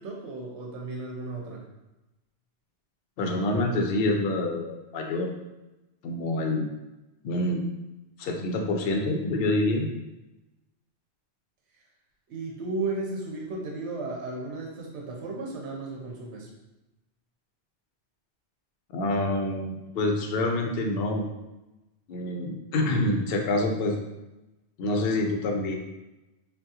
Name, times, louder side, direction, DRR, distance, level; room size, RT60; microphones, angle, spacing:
voice 1, 0.0-1.6 11.7-11.8 12.3-16.5, right 3 dB, 80° right, -1 dB, 0.9 m, -34 dB
voice 2, 3.2-5.3 6.0-6.7 7.2-7.6 8.2-9.9 18.9-21.3 22.1-24.0 24.8-25.8, left 2 dB, 65° left, 2 dB, 0.7 m, -26 dB
3.5 x 2.3 x 2.7 m, 1.0 s
omnidirectional pair, 1.2 m